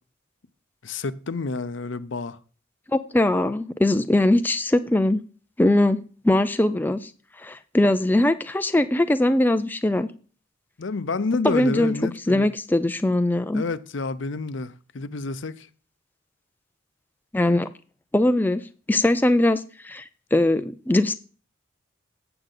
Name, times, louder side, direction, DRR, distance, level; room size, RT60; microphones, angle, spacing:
voice 1, 0.8-2.4 10.8-12.5 13.5-15.7, left 3 dB, 70° left, 0.7 m, -29 dB
voice 2, 2.9-5.2 5.6-6.0 6.2-7.1 7.4-10.1 11.4-13.6 17.3-17.7 18.1-21.1, left 1 dB, 10° left, 0.4 m, -21 dB
8.0 x 7.8 x 3.9 m
head